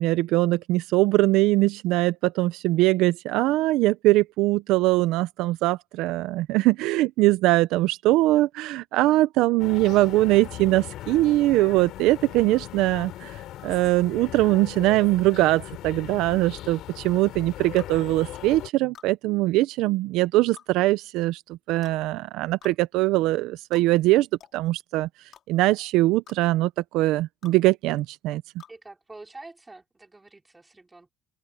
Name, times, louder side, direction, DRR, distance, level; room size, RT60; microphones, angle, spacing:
voice 1, 0.0-24.3 24.5-25.1 25.5-28.4, right 18 dB, 70° right, 0.5 m, -22 dB
sound 1, 9.6-18.7, left 14 dB, 60° left, 3.8 m, -39 dB
sound 2, 17.8-17.9 18.9-19.1 20.5-20.7 21.8-22.0 22.6-22.8 23.7-23.9 24.4-24.6 25.3-25.4 26.3-26.4 27.4-27.6 28.6-28.8, left 9 dB, 40° left, 2.3 m, -49 dB
voice 2, 28.7-31.1, right 2 dB, 10° right, 4.5 m, -46 dB
cardioid pair, 145°, 0 cm